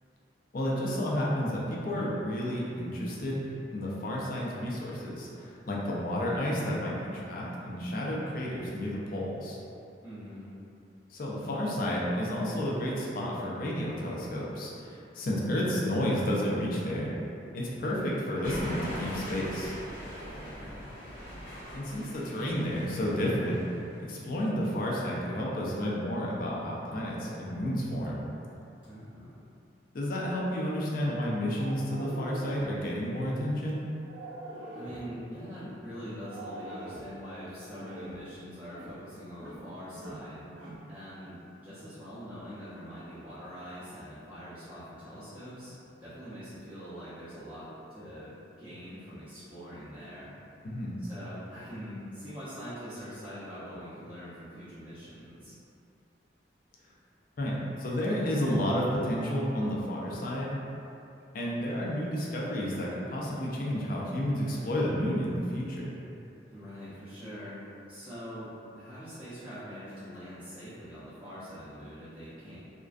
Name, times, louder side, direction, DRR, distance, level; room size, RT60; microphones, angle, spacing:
voice 1, 0.5-3.4 3.7-9.6 11.1-17.1 17.5-19.7 21.7-23.8 24.1-28.2 29.9-33.8 50.6-51.0 57.4-60.6 61.3-66.0, equal, 50° left, -5 dB, 0.4 m, -31 dB
voice 2, 10.0-10.5 20.3-20.9 28.8-29.4 34.7-40.4 40.9-41.4 41.6-50.3 51.0-55.5 66.5-68.5 68.8-72.6, equal, 10° right, -15 dB, 0.5 m, -44 dB
sound 1, 18.4-24.0, equal, 75° left, 1.0 m, -41 dB
sound 2, 31.5-32.8 34.0-35.2 36.2-37.1 37.7-38.2 38.7-39.0 39.3-39.7 39.9-40.9, right 1 dB, 80° right, 0.4 m, -43 dB
2.4 x 2.2 x 2.3 m, 2.7 s
head